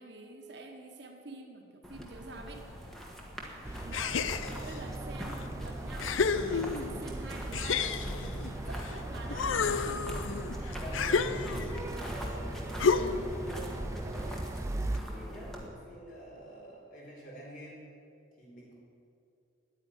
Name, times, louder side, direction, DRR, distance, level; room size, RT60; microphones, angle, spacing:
voice 1, 0.0-3.2 3.8-10.3 14.8-15.0, right 2 dB, 60° right, 3 dB, 1.5 m, -47 dB
sound 1, 1.8-15.7, equal, ahead, 1.5 m, -44 dB
sound 2, 3.6-15.0, right 1 dB, 15° right, 0.3 m, -38 dB
sound 3, 3.9-4.8 5.4-5.5 6.0-7.0 7.5-9.0 9.3-11.8 12.8-13.4, left 5 dB, 80° left, 0.6 m, -30 dB
voice 2, 9.6-10.4 10.8-17.8 18.4-18.7, equal, 45° left, -3 dB, 4.0 m, -47 dB
9.9 x 9.4 x 9.7 m, 2.5 s
head